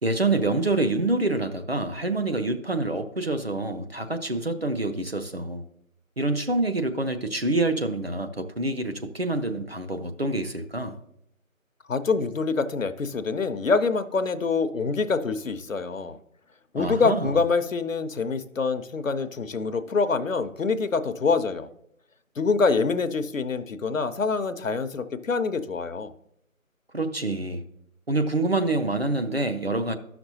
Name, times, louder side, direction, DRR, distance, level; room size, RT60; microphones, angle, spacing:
voice 1, 0.0-5.6 6.2-11.0 16.8-17.4 26.9-27.6 28.1-29.9, right 2 dB, 45° right, 0.5 m, -26 dB
voice 2, 11.9-16.2 16.7-21.7 22.4-26.1, left 4 dB, 70° left, 0.7 m, -25 dB
12.5 x 5.9 x 2.7 m
figure-of-eight pair, 160°, 41 cm